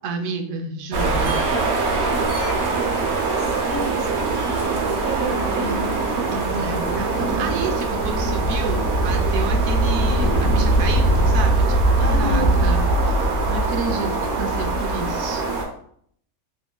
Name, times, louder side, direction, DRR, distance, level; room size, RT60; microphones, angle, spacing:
voice 1, 0.0-1.4 6.3-12.8 13.5-15.4, right 3 dB, 70° right, 4 dB, 0.9 m, -30 dB
sound 1, 0.9-15.6, right 2 dB, 90° right, 1.2 m, -21 dB
voice 2, 2.5-5.9 12.0-12.6, right 1 dB, 55° right, -2 dB, 1.4 m, -31 dB
3.8 x 2.9 x 2.2 m, 0.64 s
omnidirectional pair, 1.5 m